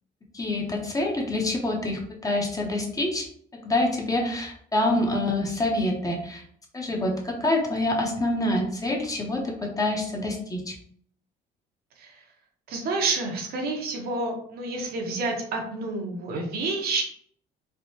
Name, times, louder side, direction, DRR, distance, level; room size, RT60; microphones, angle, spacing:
voice 1, 0.3-3.3 3.5-6.4 6.7-10.7, left 1 dB, 20° left, 1 dB, 0.7 m, -26 dB
voice 2, 12.7-17.0, right 3 dB, 65° right, 1 dB, 0.8 m, -29 dB
3.3 x 2.1 x 2.7 m, 0.62 s
cardioid pair, 110°, 17 cm